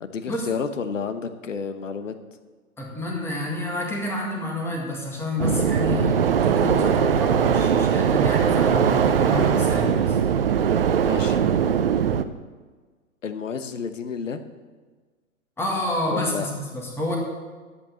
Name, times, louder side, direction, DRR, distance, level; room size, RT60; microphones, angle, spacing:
voice 1, 0.0-2.1 11.0-11.4 13.2-14.4 16.1-16.5, left 6 dB, 60° left, 10 dB, 1.1 m, -30 dB
voice 2, 2.8-10.2 15.6-17.2, left 1 dB, 5° left, -1 dB, 1.8 m, -28 dB
sound 1, 5.4-12.2, right 8 dB, 45° right, 0.6 m, -20 dB
11.0 x 8.4 x 7.4 m, 1.4 s
figure-of-eight pair, 120°, 42 cm